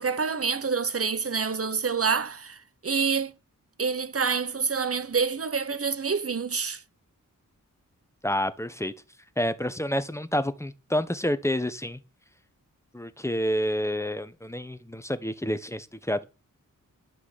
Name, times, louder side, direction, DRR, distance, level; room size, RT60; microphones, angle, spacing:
voice 1, 0.0-3.3 3.8-6.8, right 5 dB, 45° right, 1.0 m, -27 dB
voice 2, 8.2-8.9 9.4-12.0 12.9-16.3, equal, 10° left, 1.2 m, -29 dB
12.0 x 6.0 x 7.3 m
wide cardioid pair, 85°, 33 cm